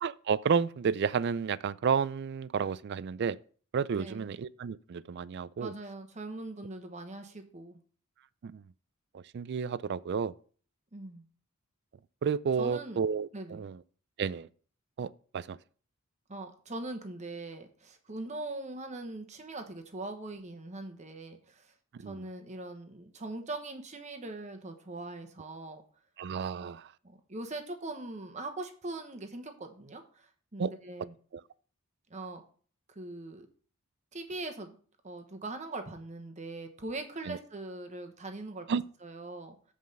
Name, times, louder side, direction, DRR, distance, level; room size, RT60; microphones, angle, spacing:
voice 1, 0.0-3.4 3.7-5.7 8.4-8.6 9.1-10.3 12.2-13.8 14.2-14.5 15.0-15.6 21.9-22.2 26.2-26.9 30.6-30.7 37.3-37.4 38.7-38.8, right 6 dB, 50° right, 0.3 m, -31 dB
voice 2, 3.9-4.3 5.6-7.8 10.9-11.3 12.6-13.0 13.3-13.7 16.3-21.7 22.0-25.8 26.6-26.7 27.0-31.1 32.1-32.4 32.9-33.5 34.1-34.7 35.0-39.7, right 2 dB, 30° right, 1.1 m, -41 dB
7.9 x 5.0 x 5.3 m
head